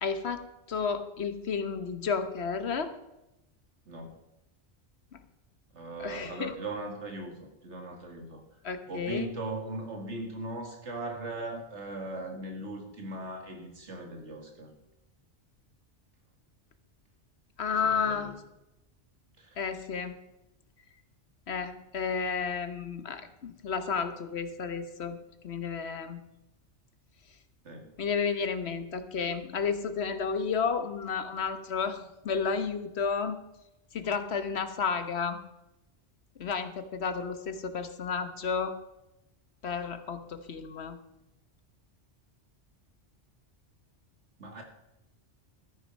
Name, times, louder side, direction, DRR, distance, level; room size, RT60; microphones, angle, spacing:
voice 1, 0.0-2.9 6.0-6.5 8.6-9.3 17.6-18.4 19.6-20.1 21.5-25.2 25.4-26.2 28.0-33.4 33.9-35.4 36.4-38.7 39.6-41.0, left 5 dB, 65° left, 10 dB, 1.3 m, -32 dB
voice 2, 3.9-4.2 5.7-8.4 8.9-14.7 17.7-18.3 19.4-19.6 27.6-27.9 44.4-44.6, right 2 dB, 80° right, 3 dB, 2.4 m, -39 dB
13.5 x 9.7 x 5.3 m, 0.92 s
omnidirectional pair, 1.2 m